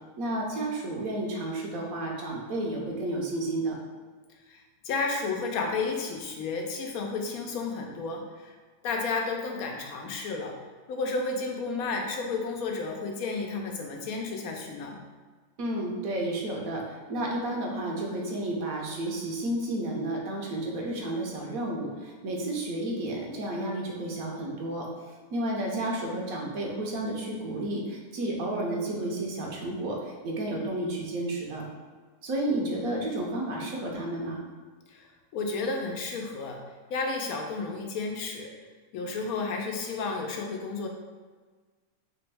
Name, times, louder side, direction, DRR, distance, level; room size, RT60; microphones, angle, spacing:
voice 1, 0.2-3.7 15.6-24.9 25.3-31.6 32.2-34.4, right 1 dB, 80° right, -1 dB, 1.2 m, -31 dB
voice 2, 4.5-8.6 8.8-10.5 10.9-15.0 34.9-36.6 36.9-38.5 38.9-40.9, left 4 dB, 90° left, 2 dB, 1.1 m, -32 dB
3.4 x 3.0 x 3.3 m, 1.5 s
omnidirectional pair, 1.5 m